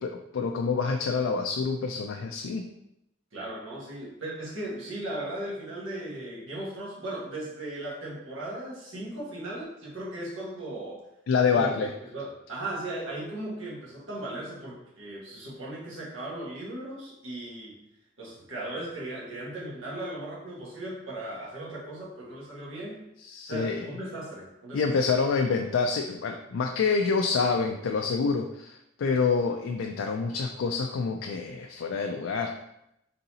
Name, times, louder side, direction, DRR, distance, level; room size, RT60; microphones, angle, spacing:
voice 1, 0.0-2.6 11.3-11.9 23.2-23.9 24.7-32.5, left 5 dB, 85° left, 3 dB, 0.3 m, -27 dB
voice 2, 3.3-11.0 11.5-17.8 18.2-23.0 23.5-24.8, right 1 dB, 90° right, -5 dB, 1.5 m, -37 dB
4.0 x 3.7 x 2.8 m, 0.83 s
head